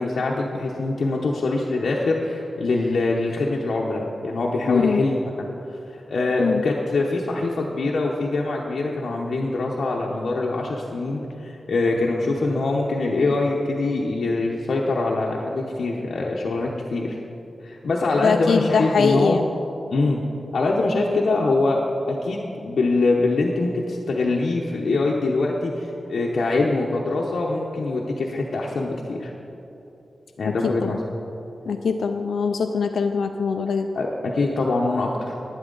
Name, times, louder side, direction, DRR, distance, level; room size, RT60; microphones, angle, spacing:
voice 1, 0.0-5.5 5.9-17.2 17.6-19.4 19.9-20.2 20.5-21.8 22.1-29.3 30.4-31.0 33.9-35.3, left 3 dB, 70° left, -3 dB, 0.8 m, -24 dB
voice 2, 4.7-5.0 6.4-6.6 18.2-19.4 30.4-31.0 31.7-33.9, left 5 dB, 90° left, 5 dB, 0.4 m, -22 dB
11.5 x 9.9 x 3.9 m, 3.0 s
wide cardioid pair, 160°, 0 cm